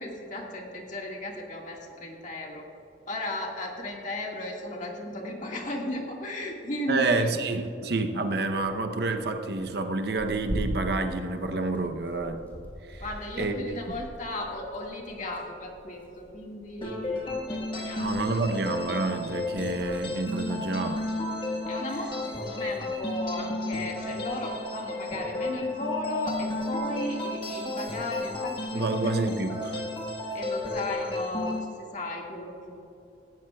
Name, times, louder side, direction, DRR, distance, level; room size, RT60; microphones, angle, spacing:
voice 1, 0.0-2.6 3.1-7.3 13.0-18.4 21.7-29.1 29.6-29.7 30.3-32.8, left 1 dB, 40° left, -1 dB, 1.8 m, -35 dB
voice 2, 6.9-12.4 12.9-13.0 13.4-13.8 18.0-21.1 28.7-29.8, right 3 dB, 60° right, 6 dB, 0.8 m, -28 dB
Tearing, 9.4-21.1, equal, 10° left, 2.8 m, -42 dB
sound 1, 16.8-31.6, left 2 dB, 25° left, 1.4 m, -33 dB
17.5 x 14.0 x 2.3 m, 2.9 s
head